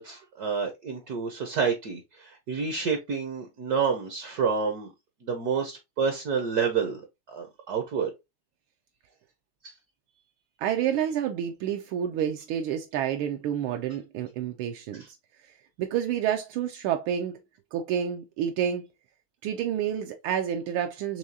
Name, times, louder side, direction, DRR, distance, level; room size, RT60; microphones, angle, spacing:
voice 1, 0.0-4.9 5.2-8.1, right 6 dB, 65° right, 1.0 m, -29 dB
voice 2, 10.6-15.0 15.8-17.3 17.7-18.9 19.4-21.2, right 9 dB, 80° right, 1.4 m, -29 dB
4.9 x 3.1 x 2.7 m
omnidirectional pair, 2.3 m